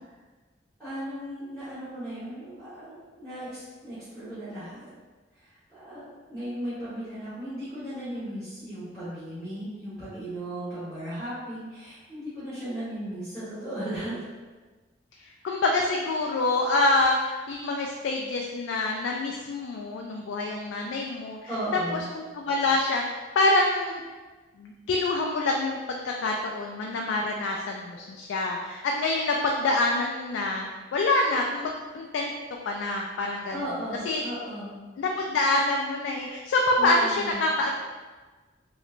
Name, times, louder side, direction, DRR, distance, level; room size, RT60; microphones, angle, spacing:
voice 1, 0.8-4.9 5.4-14.2 21.5-22.1 33.5-34.8 36.7-37.5, right 1 dB, 10° left, -15 dB, 1.1 m, -36 dB
voice 2, 15.4-21.4 22.1-24.0 24.6-25.8 26.0-32.3 32.7-33.6 34.1-34.2 35.0-37.8, left 2 dB, 80° left, 0 dB, 0.3 m, -26 dB
3.1 x 3.1 x 2.4 m, 1.3 s
head